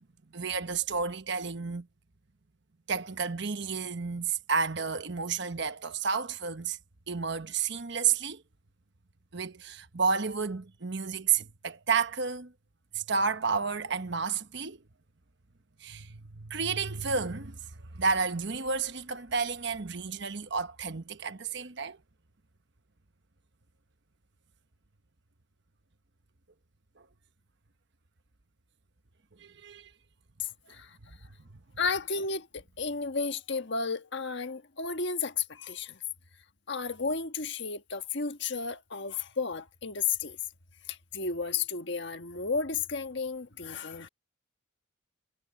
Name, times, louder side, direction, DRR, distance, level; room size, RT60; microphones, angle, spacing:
voice 1, 0.3-1.9 2.9-6.8 7.1-8.4 9.3-12.5 12.9-14.8 15.8-17.6 17.9-22.0 27.0-27.1 29.4-29.9, right 5 dB, 55° right, 1.1 m, -31 dB
voice 2, 30.4-31.2 31.8-36.0 36.7-40.4 40.9-44.1, left 5 dB, 55° left, 1.5 m, -33 dB
head